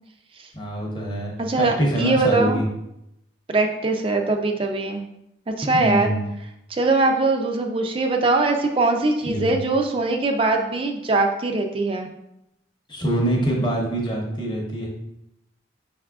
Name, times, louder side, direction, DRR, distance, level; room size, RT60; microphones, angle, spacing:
voice 1, 0.5-2.6 5.7-6.3 9.2-9.6 12.9-14.9, right 1 dB, 25° left, -1 dB, 0.7 m, -25 dB
voice 2, 1.4-2.6 3.5-5.0 5.5-6.1 6.7-12.1, right 3 dB, 30° right, 4 dB, 0.3 m, -21 dB
5.4 x 3.5 x 2.3 m, 0.83 s
head